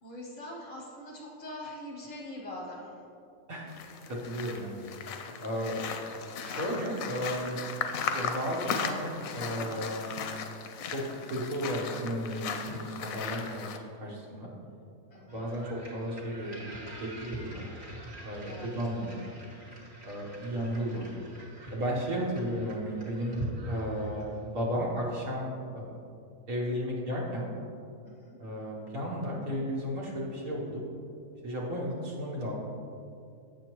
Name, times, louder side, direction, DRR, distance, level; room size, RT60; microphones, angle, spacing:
voice 1, 0.0-3.0 15.1-15.5 18.4-18.7 28.0-28.4, left 1 dB, 35° left, -2 dB, 0.7 m, -43 dB
sound 1, 3.7-13.8, left 6 dB, 90° left, 1.0 m, -37 dB
voice 2, 4.1-4.9 5.4-5.8 6.4-7.6 8.1-10.2 10.9-14.5 15.3-16.7 17.0-17.7 18.2-19.2 20.0-21.2 21.7-23.4 23.6-25.5 25.7-26.0 26.5-27.5 28.4-30.8 31.4-32.5, equal, 85° right, -4 dB, 1.6 m, -34 dB
sound 2, 15.3-24.6, right 1 dB, 40° right, 1.4 m, -44 dB
7.1 x 6.8 x 3.0 m, 2.6 s
omnidirectional pair, 1.4 m